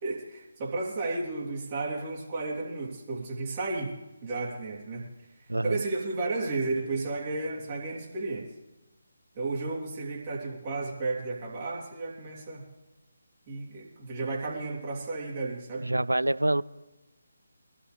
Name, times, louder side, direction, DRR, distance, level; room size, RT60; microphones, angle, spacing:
voice 1, 0.0-4.0 4.2-5.1 5.4-8.5 9.3-12.7 13.5-15.9, right 3 dB, 30° right, -3 dB, 3.3 m, -33 dB
voice 2, 5.5-5.8 15.8-16.6, right 1 dB, 80° right, 18 dB, 0.4 m, -26 dB
23.0 x 12.5 x 3.4 m, 1.0 s
figure-of-eight pair, 150°, 0 cm